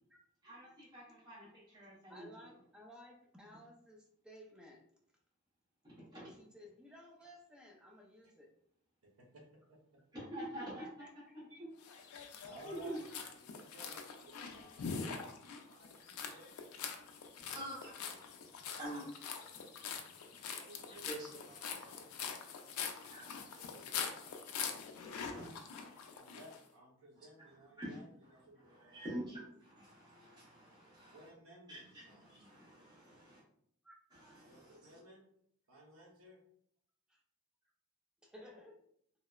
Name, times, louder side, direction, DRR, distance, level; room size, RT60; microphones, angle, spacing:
voice 1, 0.4-2.3 5.8-6.2 10.1-10.9 11.3-11.7 12.6-13.0 17.4-18.1 18.4-20.5 20.9-22.1 22.9-23.6 25.3-26.1 27.1-27.2 27.8-28.0 28.7-31.3 31.7-33.3 34.1-35.0, right 1 dB, 20° right, -10 dB, 0.9 m, -48 dB
voice 2, 2.1-4.8 6.1-8.5 10.8-11.5 12.4-12.6 13.0-13.3 13.8-14.0 15.2-15.3 33.9-34.0 38.2-38.8, left 1 dB, 5° right, -1 dB, 0.4 m, -57 dB
voice 3, 9.2-9.8 12.4-13.1 13.3-15.3 15.6-16.8 20.5-25.6 26.1-29.5 31.1-32.3 34.4-35.2 35.7-36.4, right 1 dB, 75° right, -1 dB, 0.8 m, -59 dB
sound 1, 11.8-26.6, left 6 dB, 80° left, 0.3 m, -44 dB
2.7 x 2.0 x 2.3 m, 0.68 s
head